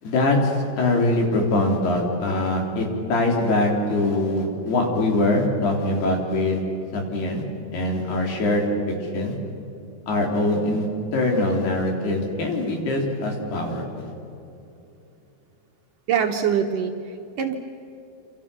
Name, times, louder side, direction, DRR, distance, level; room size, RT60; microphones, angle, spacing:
voice 1, 0.0-6.6 6.9-7.4 7.7-8.7 9.0-9.3 10.1-10.9 11.1-14.1, left 2 dB, 70° left, 1 dB, 5.8 m, -23 dB
voice 2, 16.1-17.5, right 7 dB, 65° right, 3 dB, 2.4 m, -24 dB
28.0 x 27.5 x 7.1 m, 2.8 s
omnidirectional pair, 4.8 m